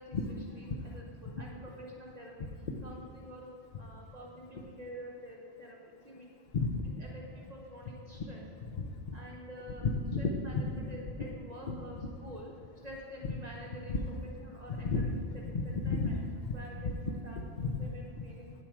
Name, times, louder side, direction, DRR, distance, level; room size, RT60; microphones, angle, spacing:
voice 1, 0.0-2.3 2.8-3.5 3.8-6.4 7.0-8.4 9.1-9.9 10.2-12.5 12.8-15.2 15.5-16.1 16.5-17.4 17.8-18.5, equal, 40° right, -3 dB, 1.0 m, -48 dB
voice 2, 6.5-6.9 8.8-8.9 9.8-10.3 11.7-11.8 13.9-14.0 14.7-15.1 15.5-16.5 16.8-16.9 17.4-17.8, left 4 dB, 50° left, 5 dB, 0.8 m, -32 dB
9.3 x 7.4 x 4.8 m, 2.4 s
omnidirectional pair, 1.0 m